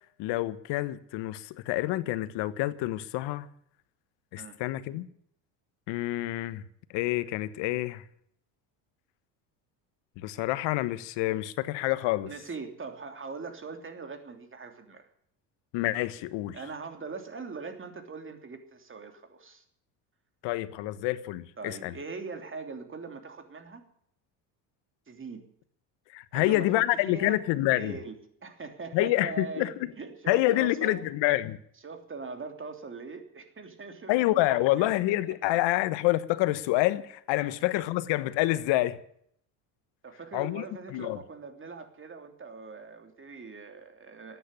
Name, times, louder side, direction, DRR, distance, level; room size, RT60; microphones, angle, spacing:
voice 1, 0.2-3.5 4.3-5.1 5.9-6.6 6.9-8.0 10.2-12.3 15.7-16.6 20.4-21.9 26.1-28.0 28.9-29.7 30.3-31.6 34.1-39.0 40.3-41.2, left 17 dB, 65° left, 1.2 m, -27 dB
voice 2, 12.3-15.0 16.5-19.6 21.6-23.8 25.1-25.5 26.3-27.4 27.8-28.2 28.4-31.0 31.8-34.9 35.2-35.3 37.4-37.5 40.0-44.4, right 4 dB, 25° right, 3.1 m, -41 dB
13.5 x 9.6 x 9.9 m
supercardioid pair, 90°, 47 cm